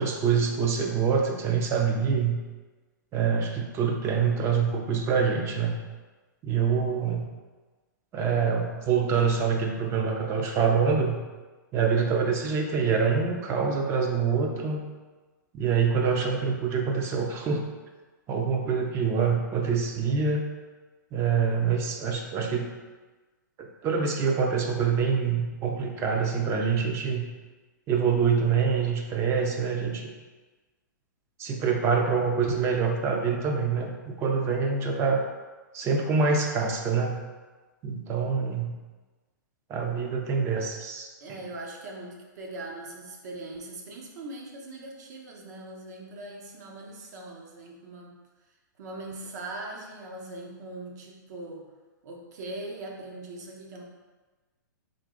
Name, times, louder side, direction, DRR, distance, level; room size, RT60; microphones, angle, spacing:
voice 1, 0.0-2.4 3.1-5.8 6.4-7.3 8.1-11.2 11.7-14.8 15.5-17.6 18.3-20.4 21.1-22.7 23.6-27.3 27.9-30.1 31.4-35.2 35.7-37.2 37.8-38.7 39.7-41.1, right 6 dB, 25° right, 2 dB, 0.5 m, -25 dB
voice 2, 41.2-48.1 48.8-51.7 52.0-53.8, right 2 dB, 60° right, 0 dB, 0.9 m, -40 dB
3.7 x 2.8 x 3.7 m, 1.3 s
hypercardioid pair, 125°, 11 cm